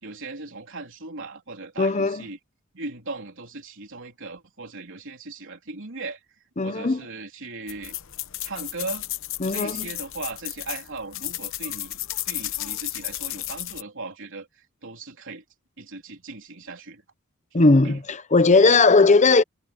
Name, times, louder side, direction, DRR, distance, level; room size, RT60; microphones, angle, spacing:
voice 1, 0.0-2.4 2.7-6.2 6.6-8.0 8.4-9.1 9.5-12.0 12.3-15.4 15.8-17.0 17.8-18.0, right 3 dB, 60° right, 3.8 m, -38 dB
voice 2, 1.8-2.2 6.6-7.0 9.4-9.9 17.5-19.4, left 3 dB, 35° left, 0.8 m, -18 dB
sound 1, 7.7-13.8, left 15 dB, 65° left, 0.9 m, -33 dB
head